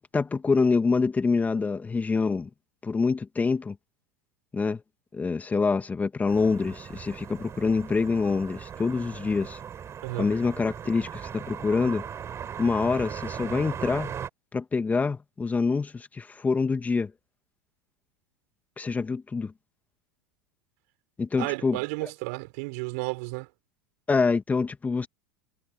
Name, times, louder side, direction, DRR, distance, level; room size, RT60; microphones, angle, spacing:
voice 1, 0.0-2.5 2.8-3.7 4.5-4.8 5.1-9.6 10.2-12.1 12.6-14.1 14.5-17.1 18.8-19.5 21.2-22.1 24.1-25.1, left 4 dB, 15° left, 1.8 m, -26 dB
sound 1, 6.3-14.3, right 8 dB, 30° right, 6.4 m, -38 dB
voice 2, 21.4-23.5, right 29 dB, 60° right, 5.9 m, -32 dB
hypercardioid pair, 90°, 9 cm